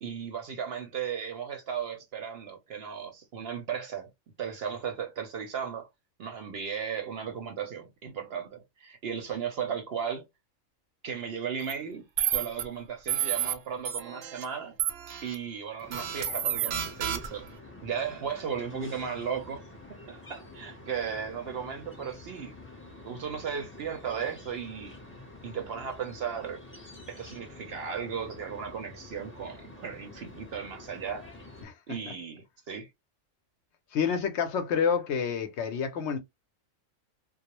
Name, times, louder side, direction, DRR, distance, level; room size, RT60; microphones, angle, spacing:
voice 1, 0.0-4.1 4.4-5.9 6.2-10.2 11.0-14.7 15.2-17.5 17.8-19.6 20.1-22.5 23.0-24.9 25.4-26.6 27.1-31.3 31.9-32.9, right 7 dB, 60° right, 0.7 m, -36 dB
sound 1, 11.6-11.7 12.2-12.6 13.1-13.5 13.9-14.5 14.8-15.4 15.9-17.5, right 10 dB, 90° right, 1.0 m, -30 dB
sound 2, 15.8-31.6, left 2 dB, 15° left, 0.5 m, -48 dB
voice 2, 31.6-32.0 33.9-36.2, left 6 dB, 65° left, 0.8 m, -28 dB
2.3 x 2.0 x 2.9 m
omnidirectional pair, 1.4 m